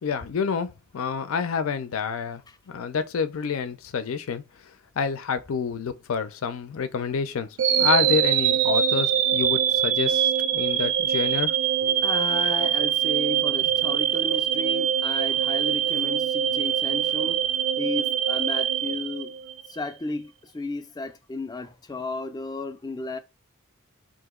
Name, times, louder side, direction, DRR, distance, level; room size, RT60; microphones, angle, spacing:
voice 1, 0.0-2.4 2.7-4.4 5.0-7.5 7.7-11.5 11.8-12.0, left 6 dB, 85° left, 0.5 m, -28 dB
sound 1, 7.6-19.7, right 9 dB, 85° right, 0.3 m, -23 dB
voice 2, 12.0-17.4 17.8-19.3 19.7-23.2, left 2 dB, 20° left, 0.3 m, -33 dB
2.9 x 2.6 x 3.6 m
head